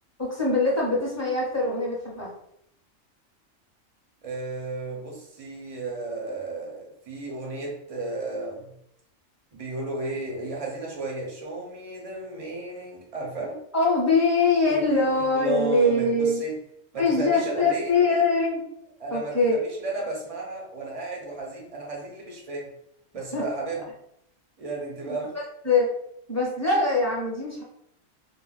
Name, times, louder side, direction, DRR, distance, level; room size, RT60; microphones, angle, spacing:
voice 1, 0.2-2.3 13.7-16.4 17.0-18.6 19.1-19.6 23.3-23.4 25.0-25.2 25.6-25.9 26.3-27.6, left 3 dB, 15° left, -4 dB, 0.7 m, -23 dB
voice 2, 4.2-8.7 9.5-13.6 14.7-16.6 16.9-17.9 19.0-22.7 23.1-23.9 24.6-25.3, right 3 dB, 40° right, -1 dB, 0.5 m, -33 dB
2.5 x 2.1 x 3.4 m, 0.74 s
omnidirectional pair, 1.4 m